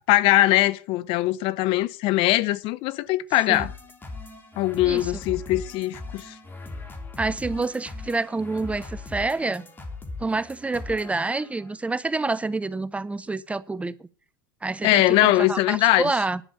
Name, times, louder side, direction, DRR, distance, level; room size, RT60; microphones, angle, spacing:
voice 1, 0.1-3.7 4.6-6.3 14.8-16.1, left 16 dB, 55° left, 0.7 m, -21 dB
sound 1, 3.5-11.7, left 3 dB, 20° left, 3.2 m, -39 dB
voice 2, 7.2-9.6 10.2-14.0 14.6-16.4, right 3 dB, 10° right, 0.6 m, -27 dB
11.0 x 7.0 x 8.8 m
hypercardioid pair, 95°, 11 cm